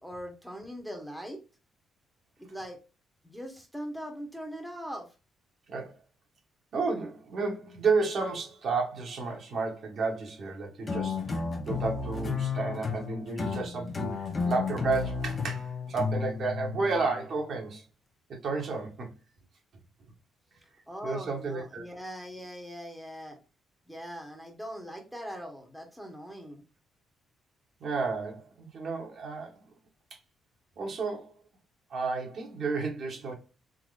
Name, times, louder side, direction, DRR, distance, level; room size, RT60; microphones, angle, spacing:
voice 1, 0.0-1.4 2.4-2.8 3.2-5.1 20.9-23.4 23.9-26.6, equal, ahead, 1.1 m, -41 dB
voice 2, 6.7-17.8 18.3-19.1 21.0-21.8 27.8-29.5 30.8-31.3 31.9-33.3, right 4 dB, 60° right, 1.3 m, -32 dB
sound 1, 10.9-17.3, left 5 dB, 35° left, 0.8 m, -33 dB
3.7 x 2.9 x 2.4 m
cardioid pair, 90°, 0 cm